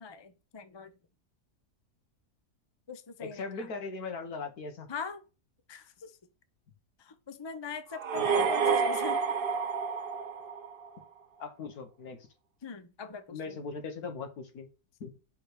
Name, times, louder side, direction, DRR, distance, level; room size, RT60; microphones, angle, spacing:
voice 1, 0.0-0.9 2.9-3.7 4.9-5.2 5.7-6.1 7.0-9.3 12.6-13.6, left 5 dB, 40° left, 0.3 m, -41 dB
voice 2, 3.2-4.9 8.1-8.5 11.4-12.2 13.3-14.7 15.0-15.1, left 4 dB, 65° left, 1.7 m, -39 dB
sound 1, 7.9-11.0, right 6 dB, 45° right, 0.7 m, -29 dB
5.6 x 5.0 x 6.4 m
omnidirectional pair, 1.7 m